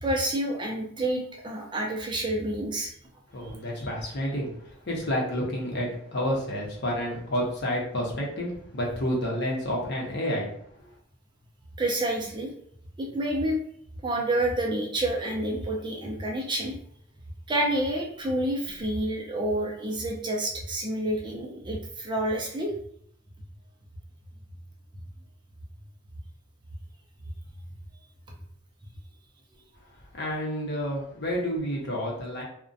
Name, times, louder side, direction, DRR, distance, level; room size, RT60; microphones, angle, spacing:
voice 1, 0.0-2.9 3.4-3.5 11.8-12.5 13.0-13.6 14.0-16.7 17.5-22.7, right 1 dB, 25° right, 0 dB, 0.4 m, -28 dB
voice 2, 3.3-10.5 30.1-32.4, equal, 55° left, -2 dB, 0.7 m, -30 dB
2.4 x 2.1 x 2.5 m, 0.66 s
head